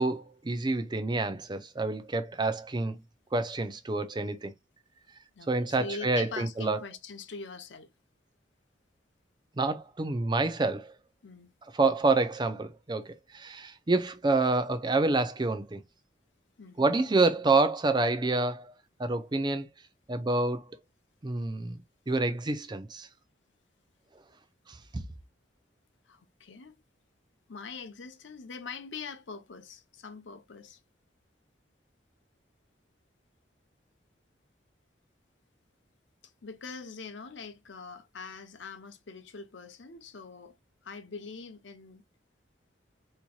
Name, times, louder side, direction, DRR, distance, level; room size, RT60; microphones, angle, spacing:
voice 1, 0.0-3.0 3.3-4.5 5.5-6.8 9.6-10.9 11.7-15.8 16.8-18.7 19.0-19.7 20.1-20.6 21.2-21.8 22.1-23.1, right 3 dB, 25° right, 0.5 m, -28 dB
voice 2, 5.4-7.9 11.2-11.5 16.6-17.0 26.1-26.8 27.5-30.8 36.4-40.5 40.8-42.0, left 4 dB, 75° left, 0.7 m, -43 dB
4.2 x 3.0 x 2.3 m
head